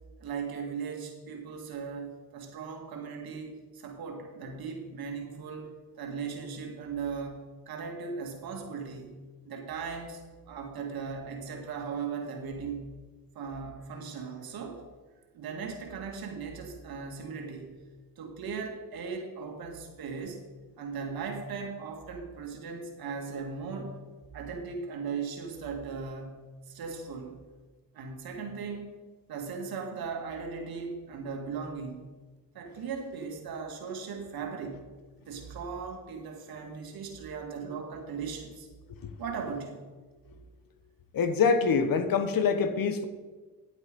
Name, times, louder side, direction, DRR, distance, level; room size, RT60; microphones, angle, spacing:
voice 1, 0.2-9.2 9.4-12.9 13.3-14.8 15.3-17.8 18.2-20.4 20.8-24.0 24.3-26.4 26.7-27.3 27.9-29.0 29.3-32.1 32.5-34.9 35.2-38.7 39.2-39.8, right 5 dB, 80° right, 3 dB, 2.0 m, -38 dB
voice 2, 41.1-43.0, left 5 dB, 70° left, 10 dB, 1.2 m, -25 dB
10.5 x 8.4 x 5.3 m, 1.4 s
supercardioid pair, 55°, 36 cm